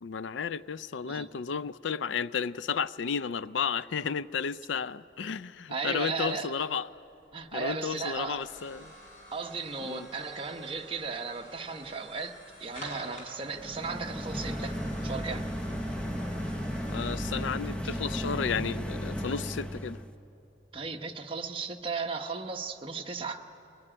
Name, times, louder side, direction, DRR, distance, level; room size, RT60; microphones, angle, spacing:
voice 1, 0.0-6.9 7.5-8.9 9.8-10.1 16.9-20.0, left 6 dB, 75° left, 0.4 m, -33 dB
voice 2, 5.7-6.5 7.3-8.4 9.3-14.8 15.0-15.5 20.7-23.4, right 4 dB, 30° right, 1.1 m, -36 dB
sound 1, 7.0-19.9, equal, 40° left, 7.2 m, -50 dB
sound 2, 13.5-20.1, equal, 5° left, 1.0 m, -34 dB
22.5 x 20.0 x 10.0 m
head